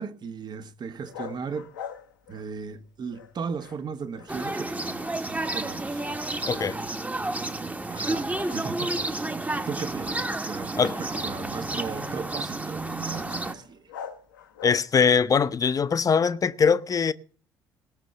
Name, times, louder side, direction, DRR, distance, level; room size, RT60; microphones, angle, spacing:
voice 1, 0.0-1.7 2.3-6.0 7.9-9.2 9.7-13.8, right 5 dB, 45° right, 1.3 m, -37 dB
sound 1, 1.0-2.8 3.1-4.7 4.9-5.7 6.0-7.2 7.6-7.8 8.4-15.2, left 8 dB, 80° left, 1.1 m, -45 dB
sound 2, 4.3-13.5, right 2 dB, 15° right, 1.2 m, -31 dB
voice 2, 6.5-6.8 10.8-11.0 14.6-17.1, left 6 dB, 35° left, 0.8 m, -22 dB
19.0 x 6.5 x 6.6 m
figure-of-eight pair, 45°, 10 cm